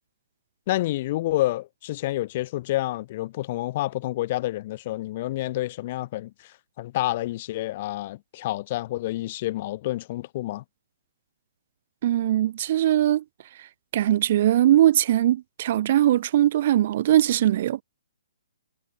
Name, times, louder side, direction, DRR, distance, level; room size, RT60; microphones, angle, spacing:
voice 1, 0.7-6.5 6.8-10.6, left 16 dB, 40° left, 6.9 m, -28 dB
voice 2, 12.0-13.2 13.9-17.8, right 12 dB, 50° right, 3.2 m, -20 dB
hypercardioid pair, 140°, 0 cm